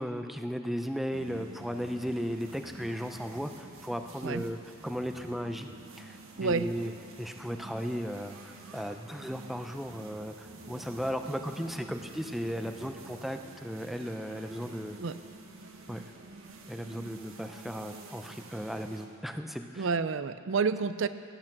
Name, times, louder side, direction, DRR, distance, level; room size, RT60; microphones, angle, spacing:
voice 1, 0.0-4.6 4.8-5.7 6.0-6.9 7.2-15.0 15.9-16.0 16.7-19.9, equal, ahead, 6 dB, 0.5 m, -36 dB
sound 1, 1.1-19.1, right 2 dB, 90° right, 1.4 m, -49 dB
voice 2, 19.8-21.1, right 5 dB, 70° right, 13 dB, 0.5 m, -29 dB
17.0 x 8.9 x 6.0 m, 2.5 s
head